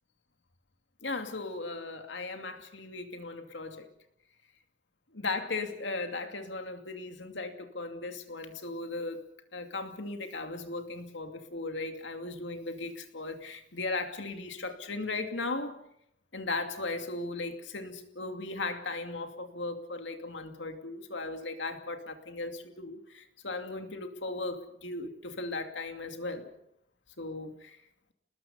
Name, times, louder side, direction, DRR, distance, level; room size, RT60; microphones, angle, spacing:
voice 1, 1.0-3.9 5.1-9.2 9.5-15.8 16.3-26.5 27.2-27.8, left 3 dB, 85° left, 6 dB, 2.6 m, -37 dB
29.5 x 20.0 x 5.6 m, 0.74 s
head